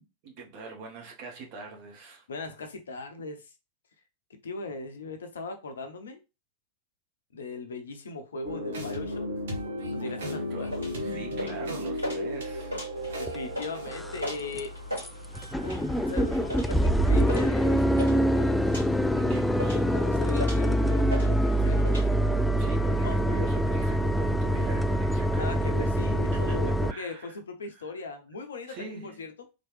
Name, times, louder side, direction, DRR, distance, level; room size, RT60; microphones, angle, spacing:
voice 1, 0.2-2.2 10.0-12.9 19.2-19.8 22.6-25.9 26.3-27.4 28.7-29.2, right 3 dB, 45° right, 1.4 m, -43 dB
voice 2, 2.3-3.5 4.3-6.2 7.3-9.3 9.9-10.7 13.2-14.8 15.6-18.6 19.7-21.9 23.0-23.2 25.4-29.3, left 3 dB, 65° left, 0.8 m, -38 dB
sound 1, 8.4-16.7, equal, 65° right, 1.3 m, -36 dB
sound 2, 10.6-22.1, left 1 dB, 80° right, 2.6 m, -39 dB
sound 3, 13.3-13.4 13.9-14.2 14.6-14.7 15.0-15.1 15.3-26.9, equal, 5° left, 0.3 m, -25 dB
4.1 x 3.1 x 3.2 m
figure-of-eight pair, 90°, 0 cm